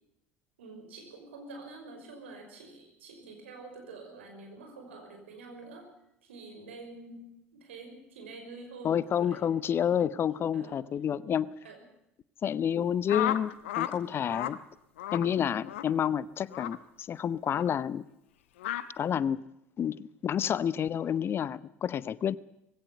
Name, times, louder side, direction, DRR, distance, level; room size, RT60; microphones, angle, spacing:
voice 1, 0.6-5.9 6.2-9.5 10.5-10.8 11.6-11.8, right 3 dB, 70° right, 3 dB, 5.8 m, -47 dB
voice 2, 8.8-11.5 12.4-14.6 15.1-18.0 19.0-19.5 19.8-22.4, left 8 dB, 35° left, 19 dB, 0.7 m, -29 dB
sound 1, 13.1-13.9 14.2-14.6 15.0-15.3 15.7-15.9 16.5-16.8 17.5-17.7 18.6-18.8, left 12 dB, 70° left, 1.0 m, -33 dB
20.0 x 17.0 x 8.1 m, 0.83 s
figure-of-eight pair, 65°, 7 cm